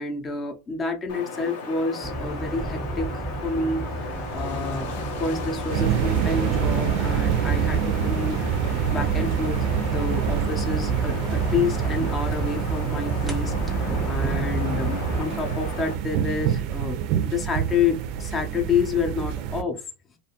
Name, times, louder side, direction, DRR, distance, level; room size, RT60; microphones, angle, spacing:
voice 1, 0.0-8.5 8.9-19.8, left 4 dB, 25° left, 3 dB, 0.5 m, -29 dB
Wind, 1.1-15.9, left 3 dB, 70° left, 0.6 m, -36 dB
sound 1, 2.0-15.2, right 1 dB, 5° right, 0.8 m, -32 dB
sound 2, 5.7-19.6, right 9 dB, 55° right, 0.4 m, -26 dB
2.4 x 2.2 x 2.8 m, 0.28 s
hypercardioid pair, 105°, 0 cm